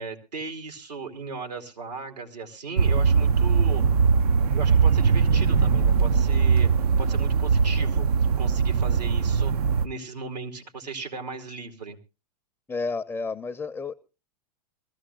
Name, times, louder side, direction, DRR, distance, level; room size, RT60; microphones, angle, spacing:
voice 1, 0.0-3.8 4.5-8.1 8.4-9.5 9.8-12.0, right 4 dB, 85° right, 3 dB, 2.8 m, -37 dB
sound 1, 2.8-9.9, right 5 dB, 65° right, 0.6 m, -21 dB
voice 2, 12.7-13.9, left 4 dB, 10° left, 8 dB, 0.6 m, -31 dB
23.0 x 14.5 x 2.4 m, 0.30 s
hypercardioid pair, 105°, 20 cm